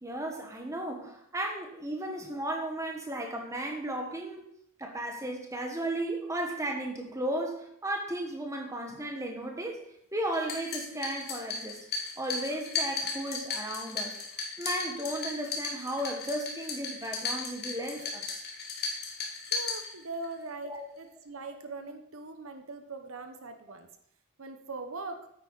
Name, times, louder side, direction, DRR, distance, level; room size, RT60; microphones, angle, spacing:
voice 1, 0.0-4.5 4.8-9.8 10.1-11.8 12.2-14.2 14.6-18.3 20.6-20.8, right 1 dB, 15° right, 2 dB, 1.3 m, -35 dB
sound 1, 10.3-20.3, left 4 dB, 45° left, 1.7 m, -36 dB
voice 2, 19.5-23.9 24.4-25.3, right 3 dB, 70° right, 7 dB, 1.0 m, -41 dB
9.5 x 8.8 x 4.1 m, 0.72 s
head